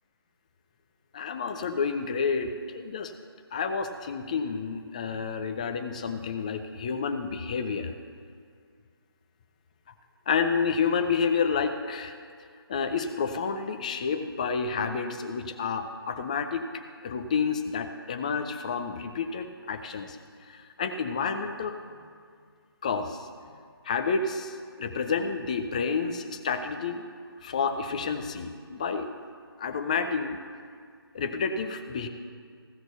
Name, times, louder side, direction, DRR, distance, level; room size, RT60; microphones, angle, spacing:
voice 1, 1.1-3.1 3.5-7.9 10.3-12.2 12.7-20.2 20.5-21.7 22.8-23.3 23.8-27.0 27.4-29.1 29.6-30.4 31.1-32.1, left 5 dB, 15° left, 7 dB, 0.4 m, -29 dB
15.5 x 5.9 x 6.7 m, 2.1 s
figure-of-eight pair, 150°, 13 cm